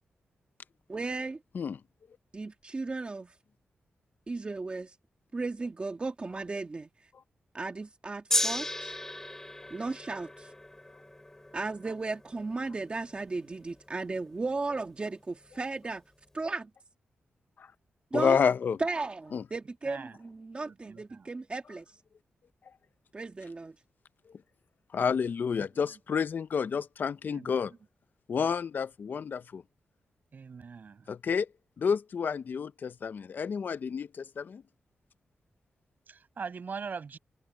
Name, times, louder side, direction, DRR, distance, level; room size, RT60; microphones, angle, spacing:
voice 1, 0.9-1.4 2.3-3.3 4.3-5.0 5.3-6.9 7.5-9.0 9.7-10.5 11.5-16.0 16.3-16.7 18.1-18.4 18.8-21.9 23.1-23.7, right 3 dB, 30° right, 1.9 m, -35 dB
Gong, 8.3-14.7 15.4-15.5, left 1 dB, 10° left, 3.3 m, -36 dB
voice 2, 18.1-18.8 19.3-19.4 24.9-27.7 28.3-29.6 31.1-31.5 31.8-34.6, left 6 dB, 60° left, 0.7 m, -29 dB
voice 3, 19.8-20.2 20.6-21.3 25.6-25.8 27.3-27.8 30.3-31.1 36.1-37.2, right 5 dB, 55° right, 7.2 m, -42 dB
wide cardioid pair, 110°, 4 cm